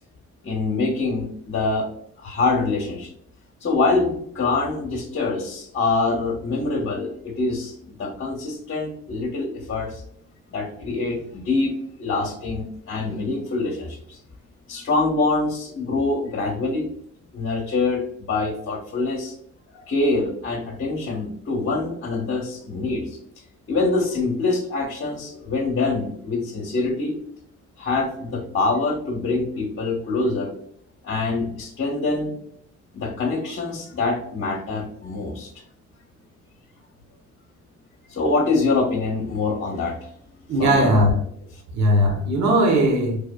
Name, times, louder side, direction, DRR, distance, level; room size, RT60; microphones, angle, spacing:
voice 1, 0.4-1.9 2.2-3.1 3.6-10.0 10.5-11.7 12.0-14.2 14.7-16.9 17.3-19.4 19.7-23.2 23.7-27.2 27.8-30.5 31.0-32.3 32.9-35.5 38.1-40.1 40.6-40.9 41.5-41.6, left 3 dB, 45° left, -2 dB, 1.1 m, -25 dB
voice 2, 40.5-41.1 41.7-43.2, equal, 65° right, 1 dB, 1.3 m, -18 dB
4.8 x 3.6 x 2.2 m, 0.65 s
cardioid pair, 90°, 30 cm